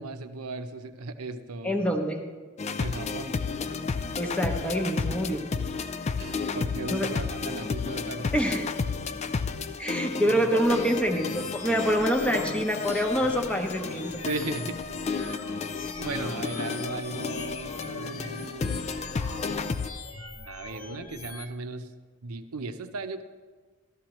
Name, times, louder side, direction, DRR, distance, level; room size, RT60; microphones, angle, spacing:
voice 1, 0.0-1.9 2.8-3.4 6.2-8.3 10.2-10.6 14.2-14.8 16.0-18.8 20.5-21.9 22.2-23.2, right 3 dB, 85° right, 8 dB, 0.7 m, -36 dB
voice 2, 1.6-2.3 4.2-5.5 6.9-7.1 8.3-8.7 9.8-14.2, equal, 5° left, 3 dB, 0.8 m, -26 dB
sound 1, 2.6-19.9, left 5 dB, 30° left, 0.3 m, -32 dB
sound 2, 10.6-21.5, left 3 dB, 65° left, 0.9 m, -42 dB
13.5 x 13.0 x 3.0 m, 1.4 s
head